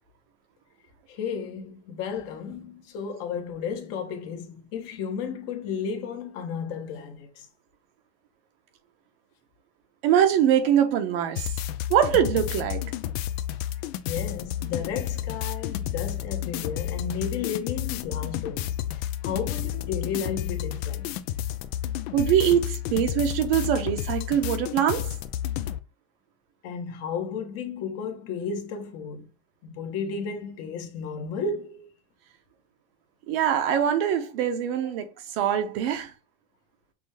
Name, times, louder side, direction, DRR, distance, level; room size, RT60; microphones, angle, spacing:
voice 1, 1.1-7.5 14.0-18.8 19.2-21.2 26.6-29.3 29.6-31.9, left 6 dB, 55° left, 1.0 m, -33 dB
voice 2, 10.0-11.5 11.9-12.8 22.1-25.1 33.3-36.1, right 9 dB, 75° right, 1.1 m, -23 dB
sound 1, 11.4-25.8, left 12 dB, 80° left, 0.6 m, -31 dB
6.0 x 2.1 x 3.4 m
supercardioid pair, 135°, 31 cm